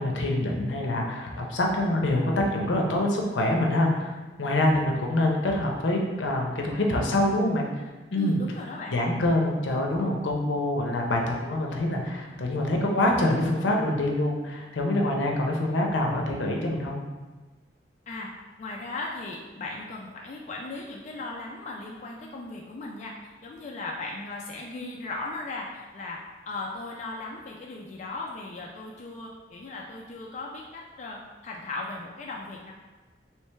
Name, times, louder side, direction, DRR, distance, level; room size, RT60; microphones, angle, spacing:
voice 1, 0.0-7.7 8.1-8.4 8.9-17.1, left 1 dB, 80° left, 1 dB, 0.6 m, -25 dB
voice 2, 8.1-9.0 18.1-18.3 18.6-26.2 26.5-32.7, left 2 dB, 40° left, -2 dB, 0.3 m, -37 dB
3.2 x 3.1 x 3.2 m, 1.2 s
head